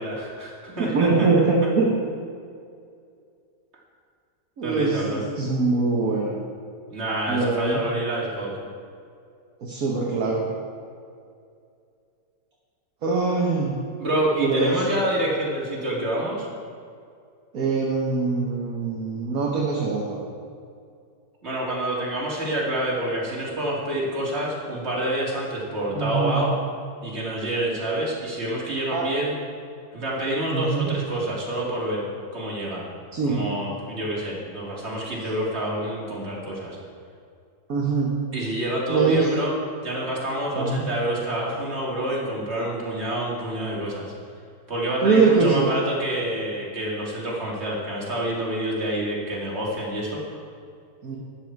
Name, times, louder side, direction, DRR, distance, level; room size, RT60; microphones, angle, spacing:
voice 1, 0.0-1.3 4.6-5.2 6.9-8.6 14.0-16.5 21.4-26.5 27.0-29.3 29.9-32.0 32.3-32.9 33.2-36.8 38.3-39.5 39.8-44.1 44.7-50.2, right 1 dB, 40° right, -4 dB, 2.8 m, -27 dB
voice 2, 0.8-1.9 4.6-6.4 7.3-7.8 9.6-10.5 13.0-13.8 14.4-14.8 17.5-20.2 25.9-26.4 28.9-29.1 30.5-30.9 33.1-33.4 35.1-35.2 37.7-38.2 38.9-39.3 40.5-40.8 45.0-45.7 51.0-51.2, right 4 dB, 55° right, -3 dB, 1.7 m, -23 dB
12.5 x 9.2 x 4.7 m, 2.3 s
omnidirectional pair, 1.8 m